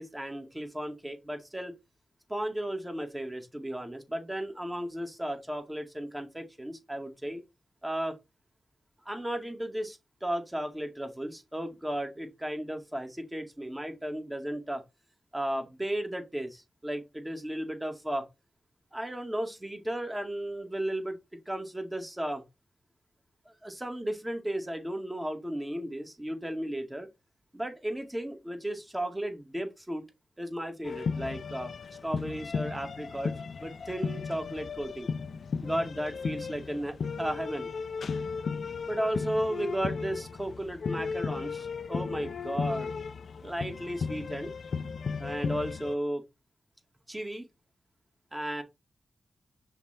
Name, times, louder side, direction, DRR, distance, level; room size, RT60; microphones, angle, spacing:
voice 1, 0.0-1.7 2.3-7.4 7.8-8.2 9.1-14.8 15.3-18.2 18.9-22.4 23.5-27.1 27.5-30.0 30.4-31.7 32.0-33.3 33.6-35.1 35.6-37.7 38.9-43.0 43.4-44.5 45.2-46.2 47.1-47.5 48.3-48.6, right 1 dB, 15° right, 2.0 m, -34 dB
sound 1, 30.8-45.9, left 5 dB, 70° left, 0.5 m, -35 dB
5.9 x 3.8 x 4.3 m
cardioid pair, 50°, 0 cm